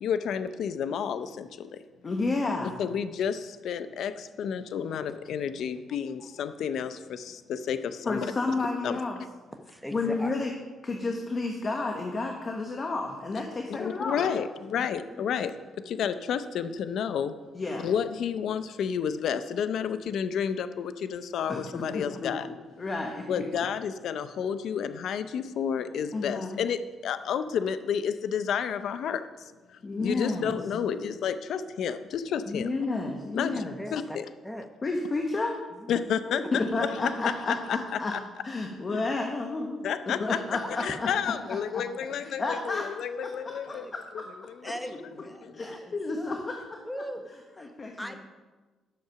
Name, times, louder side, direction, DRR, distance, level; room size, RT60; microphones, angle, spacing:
voice 1, 0.0-1.5 2.8-8.3 8.8-9.0 13.7-15.5 15.9-17.3 17.8-22.5 23.3-29.2 30.0-32.7 33.3-33.5 33.9-34.2 35.9-36.6 36.9-37.8 38.1-38.2 39.8-40.4 40.7-43.9, left 7 dB, 70° left, 11 dB, 0.5 m, -30 dB
voice 2, 2.0-2.8 8.0-9.2 9.9-10.5 10.8-14.3 17.5-17.9 21.5-23.4 26.1-26.6 29.8-30.5 32.5-33.8 34.8-35.5 36.2-38.1 38.4-41.8 42.2-42.9 43.2-44.5 45.5-46.8 47.6-48.2, left 3 dB, 35° left, 2 dB, 1.2 m, -31 dB
voice 3, 9.7-10.3 14.8-14.9 15.1-15.2 30.5-31.0 33.5-34.2 34.4-34.7 35.7-36.1 40.6-41.2 42.1-42.2 43.7-43.9 44.6-46.3 46.8-47.7 48.0-48.2, equal, 5° left, 6 dB, 0.9 m, -41 dB
11.0 x 6.7 x 5.8 m, 1.3 s
cardioid pair, 90°, 0 cm